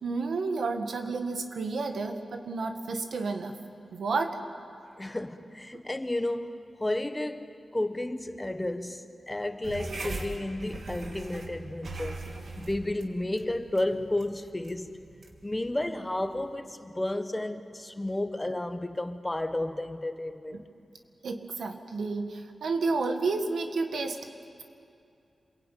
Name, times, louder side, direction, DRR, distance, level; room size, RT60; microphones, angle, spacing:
voice 1, 0.0-3.6 3.9-4.4 20.5-20.6 21.2-24.3, right 3 dB, 90° right, 1.9 m, -31 dB
voice 2, 5.0-12.2 12.6-14.9 15.4-20.7, left 1 dB, 15° left, 1.2 m, -32 dB
sound 1, 9.6-16.5, right 2 dB, 60° right, 2.8 m, -41 dB
28.0 x 22.0 x 9.2 m
wide cardioid pair, 125°, 0 cm